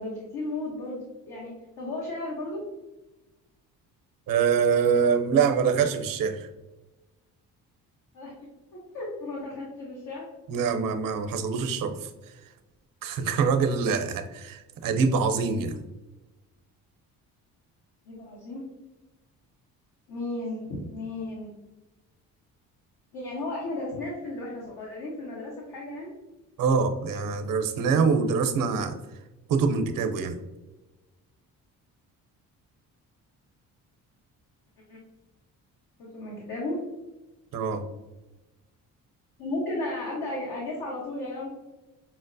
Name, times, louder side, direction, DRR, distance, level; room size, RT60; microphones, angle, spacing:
voice 1, 0.0-2.6 8.1-8.3 8.7-10.3 18.0-18.7 20.1-21.5 23.1-26.1 34.9-35.0 36.0-36.8 39.4-41.5, left 2 dB, 75° left, -4 dB, 1.0 m, -34 dB
voice 2, 4.3-6.5 10.5-12.1 13.0-15.8 26.6-28.9 29.5-30.4 37.5-37.9, right 5 dB, 60° right, 7 dB, 0.6 m, -24 dB
5.8 x 2.1 x 2.6 m, 1.1 s
supercardioid pair, 65°, 37 cm